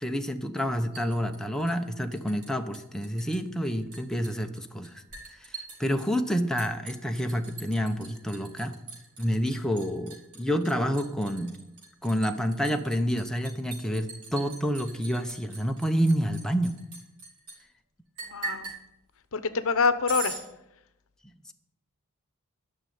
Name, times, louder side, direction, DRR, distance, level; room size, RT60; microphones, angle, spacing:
voice 1, 0.0-5.0 5.8-8.8 9.2-11.5 12.0-16.7, equal, ahead, 4 dB, 0.7 m, -28 dB
Liquid, 0.6-2.5 2.7-3.4 3.6-17.6 18.2-18.8 20.1-20.4, right 3 dB, 75° right, 4.8 m, -41 dB
voice 2, 18.2-18.7 19.3-20.4, left 4 dB, 65° left, 12 dB, 0.8 m, -26 dB
12.0 x 6.5 x 9.4 m, 0.90 s
head